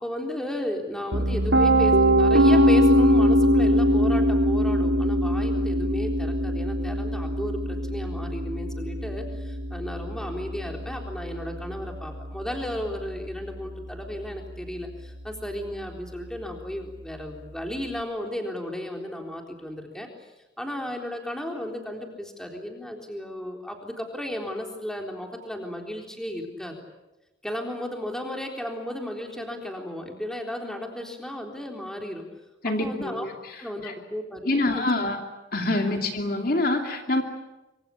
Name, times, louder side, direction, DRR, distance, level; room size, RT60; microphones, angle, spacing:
voice 1, 0.0-20.3 20.6-26.8 27.4-32.2 32.6-33.3 33.6-34.8 35.8-36.0, left 1 dB, 5° left, 2 dB, 3.8 m, -34 dB
Piano, 1.1-13.0, equal, 80° right, 3.2 m, -22 dB
voice 2, 32.6-33.9 34.4-35.2 35.5-37.2, left 2 dB, 50° left, 4 dB, 2.7 m, -26 dB
26.0 x 25.5 x 8.7 m, 1.0 s
head